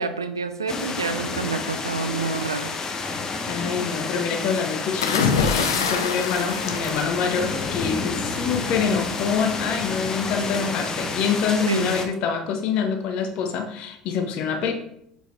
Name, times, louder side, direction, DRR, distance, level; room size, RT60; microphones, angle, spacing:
voice 1, 0.0-2.7 11.7-11.9, right 4 dB, 90° right, 10 dB, 0.4 m, -28 dB
sound 1, 0.7-12.1, left 4 dB, 30° left, 0.9 m, -30 dB
voice 2, 3.5-14.7, left 6 dB, 55° left, 4 dB, 1.1 m, -26 dB
sound 2, 5.0-7.8 9.0-9.3, left 5 dB, 80° left, 0.7 m, -25 dB
6.7 x 4.7 x 3.3 m, 0.77 s
hypercardioid pair, 70°, 2 cm